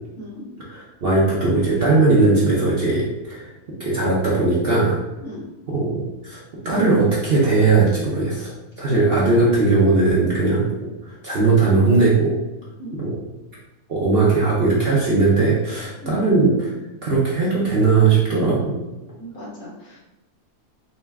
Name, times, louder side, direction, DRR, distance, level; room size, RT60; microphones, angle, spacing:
voice 1, 0.2-0.5 5.2-5.4 8.8-9.0 12.8-13.0 16.0-16.2 19.2-20.0, equal, 65° left, -6 dB, 1.6 m, -36 dB
voice 2, 0.7-3.5 3.8-5.0 5.7-6.4 6.6-12.3 12.9-13.1 13.9-16.7 17.0-18.8, right 3 dB, 55° right, -6 dB, 0.7 m, -19 dB
3.8 x 2.2 x 3.4 m, 1.0 s
omnidirectional pair, 1.6 m